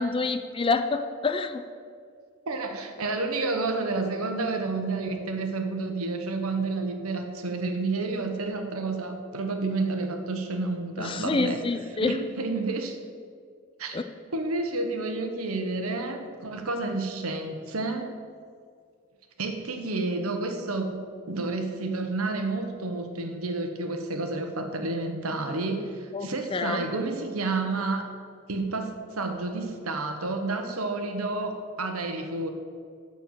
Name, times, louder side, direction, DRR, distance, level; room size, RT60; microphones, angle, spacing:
voice 1, 0.0-1.6 11.0-12.2 13.9-14.0 26.1-26.8, left 3 dB, 25° left, 9 dB, 0.4 m, -27 dB
voice 2, 2.5-11.6 11.9-13.0 13.8-14.0 14.3-18.1 19.4-21.0 21.3-28.1 28.5-32.5, right 3 dB, 85° right, 5 dB, 1.1 m, -30 dB
12.0 x 4.5 x 7.4 m, 2.1 s
head